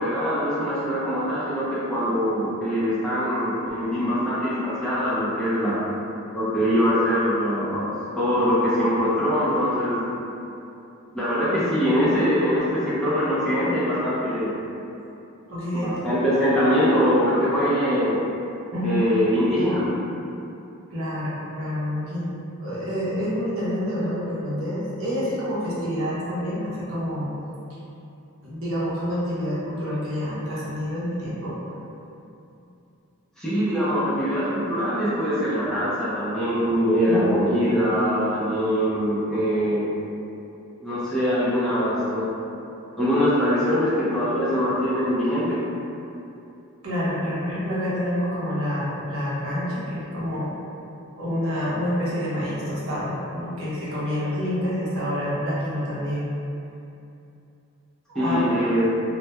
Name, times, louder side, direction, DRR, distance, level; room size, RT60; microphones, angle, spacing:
voice 1, 0.0-5.8 6.3-7.8 8.1-10.0 11.1-14.6 15.7-18.2 18.8-19.9 33.4-39.8 40.8-42.3 43.0-45.6 58.1-58.8, equal, 5° left, -12 dB, 0.4 m, -23 dB
voice 2, 15.5-16.0 18.7-19.1 20.9-27.3 28.4-31.5 37.1-37.3 46.8-50.5 51.2-56.3 58.1-58.5, equal, 70° right, -9 dB, 0.7 m, -27 dB
2.2 x 2.1 x 2.8 m, 2.8 s
head